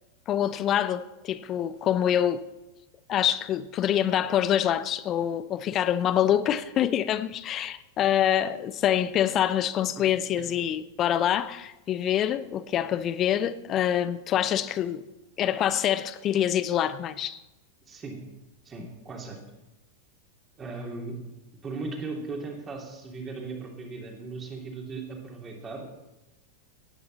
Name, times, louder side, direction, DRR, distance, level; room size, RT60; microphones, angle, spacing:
voice 1, 0.3-2.4 3.1-15.0 15.4-17.4, left 10 dB, 30° left, 0.6 m, -25 dB
voice 2, 17.9-18.2 18.6-19.4 20.6-21.2 21.6-25.9, right 3 dB, 20° right, 3.0 m, -37 dB
17.5 x 9.6 x 4.2 m
figure-of-eight pair, 90°, 0 cm